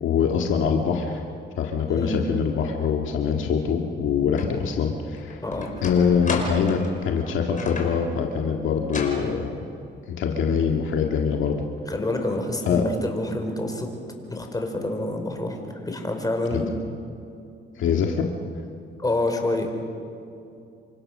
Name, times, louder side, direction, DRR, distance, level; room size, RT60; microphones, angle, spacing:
voice 1, 0.0-1.2 1.6-5.4 5.8-9.5 10.2-11.7 12.7-12.8 16.5-16.6 17.8-18.3, left 6 dB, 80° left, 2 dB, 1.9 m, -24 dB
voice 2, 1.8-2.2 5.4-5.7 11.9-13.9 14.3-15.6 15.8-16.7 17.8-18.0 19.0-19.7, left 2 dB, 20° left, 4 dB, 5.0 m, -27 dB
sound 1, 4.4-4.5 5.0-8.0 8.8-9.3, left 3 dB, 40° left, 5.4 m, -33 dB
28.5 x 25.0 x 6.7 m, 2.6 s
cardioid pair, 90°, 20 cm